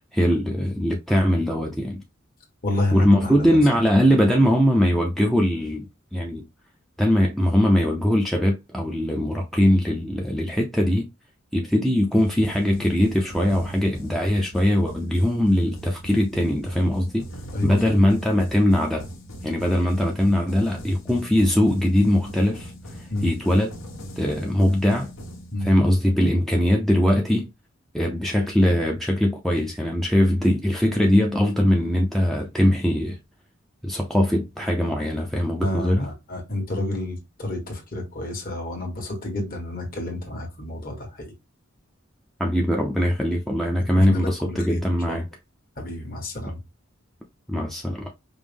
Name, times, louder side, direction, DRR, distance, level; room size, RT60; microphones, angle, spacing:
voice 1, 0.1-2.0 2.9-5.9 6.1-6.4 7.0-11.1 11.5-17.3 17.6-19.1 19.4-23.7 24.2-25.1 25.6-27.5 27.9-33.2 33.8-36.1 42.4-45.3 46.5-46.6 47.5-48.1, left 1 dB, ahead, 0.5 m, -21 dB
voice 2, 2.6-3.6 17.5-18.0 23.1-23.3 25.5-25.7 30.8-30.9 35.6-41.3 44.0-44.8 45.1-45.2 45.8-46.6, left 1 dB, 45° left, 1.4 m, -30 dB
sound 1, 12.1-26.0, equal, 75° left, 1.2 m, -40 dB
5.2 x 2.1 x 3.4 m
head